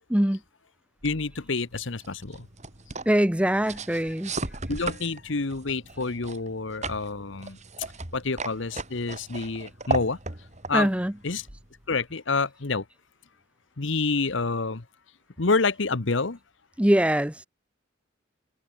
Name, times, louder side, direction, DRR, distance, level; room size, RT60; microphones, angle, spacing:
voice 1, 1.0-2.5 4.7-7.6 8.1-10.2 10.7-10.9 11.2-11.5 11.9-12.8 13.8-14.8 15.4-16.4, left 3 dB, 60° left, 1.1 m, -28 dB
sound 1, 1.0-12.1, right 3 dB, 35° right, 2.7 m, -37 dB
voice 2, 3.1-4.3 10.7-11.1 16.8-17.4, right 1 dB, 5° right, 0.6 m, -22 dB
head